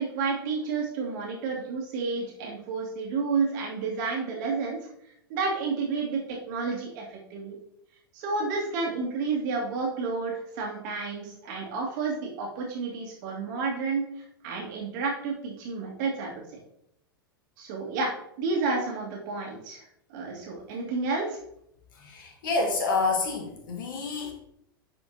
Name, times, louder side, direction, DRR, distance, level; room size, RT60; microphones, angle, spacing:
voice 1, 0.0-4.8 5.3-7.6 8.1-14.1 14.4-16.3 17.6-18.1 18.4-19.8 20.1-21.4, right 4 dB, 55° right, -2 dB, 2.5 m, -30 dB
voice 2, 22.0-24.3, left 3 dB, 65° left, 2 dB, 1.7 m, -28 dB
10.5 x 5.1 x 2.8 m, 0.74 s
figure-of-eight pair, 90°, 12 cm